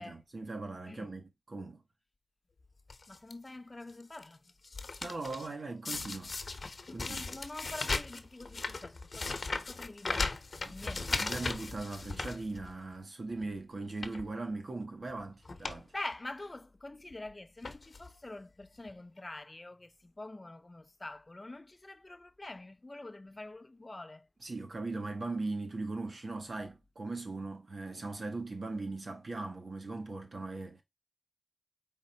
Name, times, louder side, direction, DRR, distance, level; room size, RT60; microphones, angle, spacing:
voice 1, 0.0-1.8 5.0-6.3 6.9-7.3 10.6-15.9 24.4-30.8, right 3 dB, 70° right, 1.6 m, -39 dB
sound 1, 2.9-3.3 3.9-4.2 4.5-5.5 5.8-12.9 13.3-13.5 13.9-14.3 15.1-15.2 15.4-15.8 16.1-16.2 17.1-17.3 17.6-18.1 18.9-19.0 19.2-19.3, left 3 dB, 70° left, 0.9 m, -37 dB
voice 2, 3.1-4.4 7.0-11.2 15.9-24.3, left 2 dB, 35° left, 0.5 m, -46 dB
5.1 x 3.7 x 2.8 m
wide cardioid pair, 60°, 0 cm